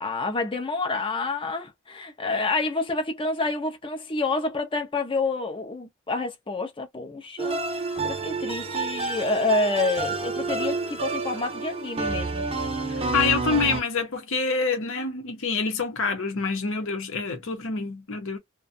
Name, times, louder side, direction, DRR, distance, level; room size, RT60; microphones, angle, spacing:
voice 1, 0.0-7.6 8.0-12.5, left 3 dB, 25° left, 0.6 m, -28 dB
sound 1, 7.4-13.8, right 3 dB, 30° right, 0.7 m, -29 dB
voice 2, 13.1-18.4, left 4 dB, 65° left, 0.8 m, -26 dB
2.4 x 2.3 x 2.5 m
head